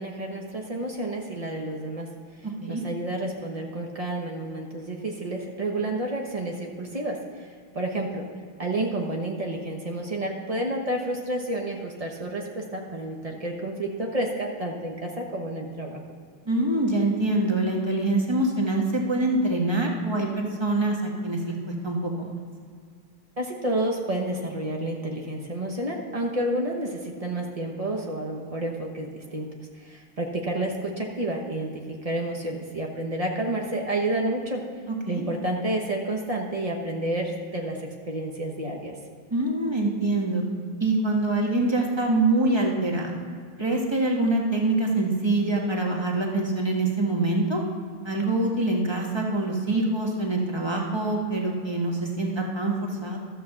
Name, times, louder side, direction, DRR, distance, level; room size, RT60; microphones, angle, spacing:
voice 1, 0.0-2.1 2.7-7.5 7.7-8.3 8.6-16.0 23.4-29.5 29.8-34.7 35.1-38.9, right 1 dB, 75° right, 1 dB, 0.3 m, -30 dB
voice 2, 16.4-21.5 21.8-22.3 34.9-35.2 39.3-40.4 40.8-43.1 43.6-47.6 48.0-53.2, right 2 dB, 15° right, -1 dB, 1.2 m, -25 dB
13.0 x 6.1 x 7.2 m, 2.1 s
omnidirectional pair, 2.4 m